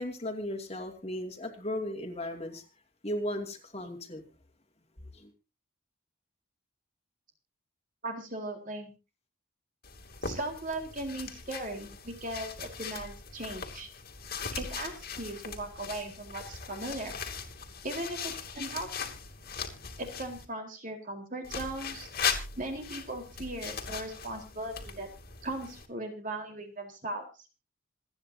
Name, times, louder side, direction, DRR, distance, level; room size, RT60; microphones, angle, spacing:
voice 1, 0.0-2.6 3.0-4.2 5.1-5.3, left 1 dB, 30° left, 2.5 m, -36 dB
voice 2, 8.0-8.9 10.2-13.9 14.5-17.2 17.8-19.1 20.0-22.1 22.6-25.1 25.4-27.2, right 1 dB, 40° right, 4.0 m, -38 dB
sound 1, 9.8-20.5 21.4-25.9, left 6 dB, 50° left, 2.8 m, -39 dB
27.0 x 9.8 x 2.7 m
head